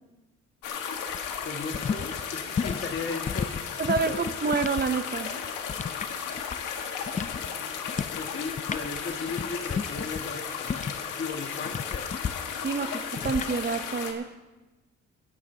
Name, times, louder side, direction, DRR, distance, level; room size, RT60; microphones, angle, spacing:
sound 1, 0.6-14.1, left 7 dB, 90° left, 1.6 m, -35 dB
sound 2, 1.1-4.9 5.2-6.8 7.1-7.5 7.9-8.2 8.5-11.1 11.7-12.3 13.2-13.5, left 6 dB, 25° left, 0.5 m, -33 dB
voice 1, 1.4-4.2 5.9-6.1 7.2-10.9 11.2-12.1, left 4 dB, 40° left, 4 dB, 1.7 m, -37 dB
voice 2, 3.8-5.3 12.6-14.3, right 5 dB, 35° right, 10 dB, 0.7 m, -28 dB
25.5 x 11.0 x 2.8 m, 1.1 s
cardioid pair, 90°, 30 cm